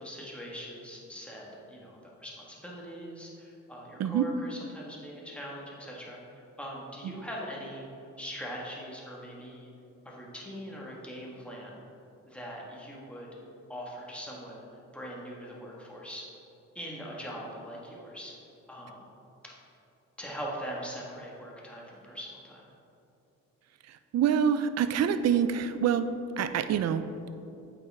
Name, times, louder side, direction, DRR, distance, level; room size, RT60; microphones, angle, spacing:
voice 1, 0.0-9.7 10.0-11.8 12.3-13.4 13.7-14.6 14.9-16.3 16.7-18.3 18.7-19.1 19.4-19.5 20.2-22.7, equal, 5° left, -4 dB, 1.6 m, -41 dB
voice 2, 23.8-26.1 26.4-27.3, right 8 dB, 60° right, 11 dB, 0.5 m, -26 dB
8.4 x 5.4 x 3.5 m, 2.8 s
cardioid pair, 90°, 30 cm